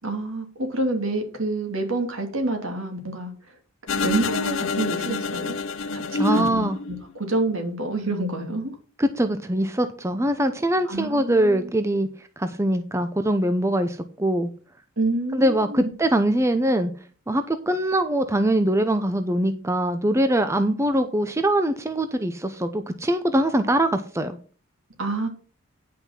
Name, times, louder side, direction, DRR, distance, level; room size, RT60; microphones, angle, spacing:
voice 1, 0.0-3.3 4.0-5.6 5.9-6.0 6.3-8.8 10.8-11.7 15.0-15.9 25.0-25.3, right 2 dB, 75° right, 4 dB, 2.7 m, -28 dB
sound 1, 3.9-7.2, left 4 dB, 65° left, 0.6 m, -27 dB
voice 2, 6.1-6.8 9.0-12.1 12.4-14.5 15.3-16.9 17.3-24.4, right 1 dB, 15° right, 9 dB, 0.6 m, -22 dB
10.0 x 5.8 x 5.7 m, 0.39 s
head